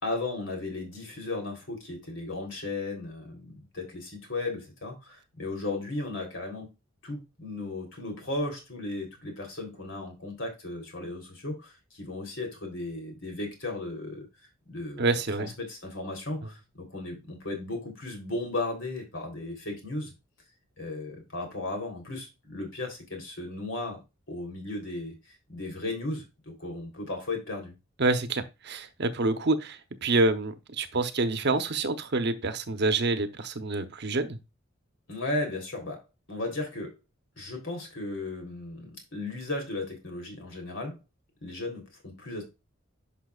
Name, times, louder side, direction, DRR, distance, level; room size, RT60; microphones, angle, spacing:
voice 1, 0.0-6.7 7.0-14.3 14.7-15.0 15.4-20.1 20.8-24.0 24.3-25.2 25.5-27.7 35.1-36.0 36.3-37.0 37.4-41.0 41.4-42.4, left 2 dB, 70° left, 3.4 m, -35 dB
voice 2, 15.0-15.5 28.0-34.4, right 3 dB, 55° right, 0.9 m, -27 dB
10.5 x 5.9 x 2.4 m
head